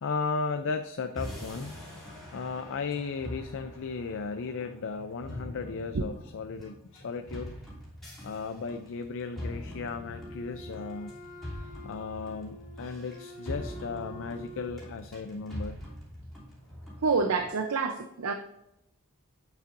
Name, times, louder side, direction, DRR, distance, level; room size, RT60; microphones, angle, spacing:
voice 1, 0.0-1.7 2.3-7.5 8.2-11.2 11.8-15.8, left 4 dB, 60° left, 7 dB, 0.4 m, -35 dB
sound 1, 1.2-17.5, left 1 dB, ahead, 2.9 m, -43 dB
Wind instrument woodwind instrument, 9.9-14.8, right 1 dB, 35° left, 0.9 m, -47 dB
voice 2, 17.0-18.3, right 4 dB, 75° right, 5 dB, 0.6 m, -27 dB
8.1 x 7.1 x 2.6 m, 0.84 s
head